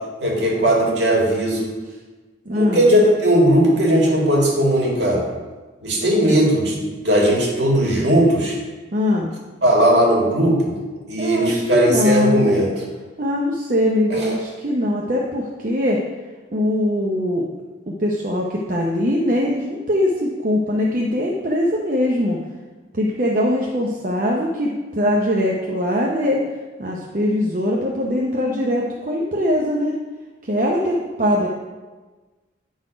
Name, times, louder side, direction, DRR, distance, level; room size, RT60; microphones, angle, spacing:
voice 1, 0.2-1.7 2.5-5.2 5.8-8.6 9.6-10.8 11.1-12.8 14.1-14.2, right 1 dB, 65° right, -2 dB, 2.0 m, -17 dB
voice 2, 2.5-2.8 8.9-9.3 11.2-12.5 13.2-16.0 16.5-17.4 17.9-22.4 22.9-24.7 25.0-26.4 26.8-29.9 30.4-31.5, left 1 dB, 45° right, -2 dB, 0.6 m, -21 dB
8.8 x 4.0 x 5.0 m, 1.3 s
head